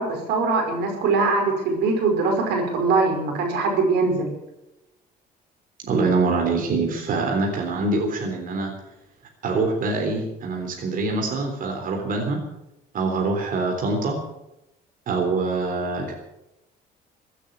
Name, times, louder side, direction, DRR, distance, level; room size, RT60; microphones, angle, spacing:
voice 1, 0.0-4.3, right 3 dB, 85° right, 2 dB, 5.1 m, -22 dB
voice 2, 5.9-8.7 9.4-12.4 12.9-14.2 15.1-16.1, right 3 dB, 55° right, 1 dB, 3.6 m, -24 dB
16.0 x 9.9 x 8.9 m, 0.90 s
cardioid pair, 110°, 17 cm